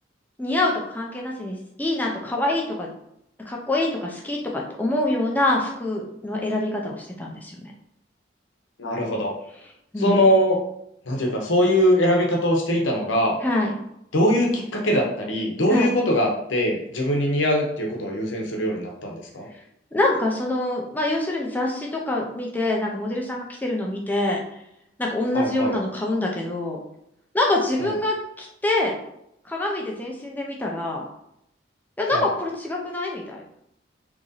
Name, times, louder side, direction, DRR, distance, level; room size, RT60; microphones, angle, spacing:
voice 1, 0.4-2.9 3.5-7.7 9.9-10.2 13.4-13.7 15.7-15.9 19.9-24.4 25.0-26.8 27.3-29.0 29.4-31.0 32.0-33.4, left 2 dB, 10° left, -2 dB, 0.5 m, -25 dB
voice 2, 8.8-9.3 10.0-10.6 11.1-13.4 14.1-19.5 25.3-25.7 27.8-27.9 32.1-32.2, equal, 90° left, 0 dB, 0.8 m, -22 dB
3.0 x 2.6 x 3.9 m, 0.78 s
head